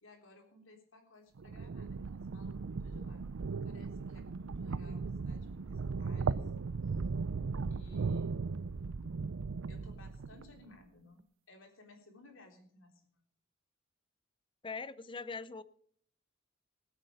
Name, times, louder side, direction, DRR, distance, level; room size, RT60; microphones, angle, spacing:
voice 1, 0.0-3.2 3.6-7.0 7.7-8.4 9.7-13.2, left 2 dB, 70° left, 3 dB, 3.6 m, -59 dB
sound 1, 1.4-10.6, right 4 dB, 70° right, 0.5 m, -37 dB
voice 2, 14.6-15.6, left 4 dB, 25° left, 17 dB, 0.6 m, -41 dB
20.5 x 8.2 x 5.1 m, 0.63 s
head